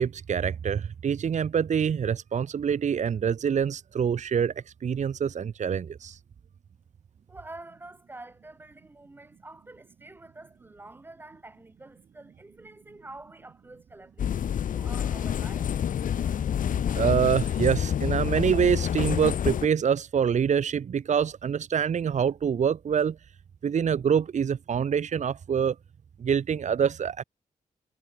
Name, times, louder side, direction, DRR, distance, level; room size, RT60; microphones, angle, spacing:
voice 1, 0.0-4.5 4.8-6.2 16.9-23.2 23.6-25.8 26.2-27.2, right 7 dB, 55° right, 1.0 m, -25 dB
voice 2, 7.3-15.7, right 2 dB, 15° right, 3.2 m, -47 dB
sound 1, 14.2-19.7, left 9 dB, 65° left, 0.6 m, -27 dB
wide cardioid pair, 165°, 15 cm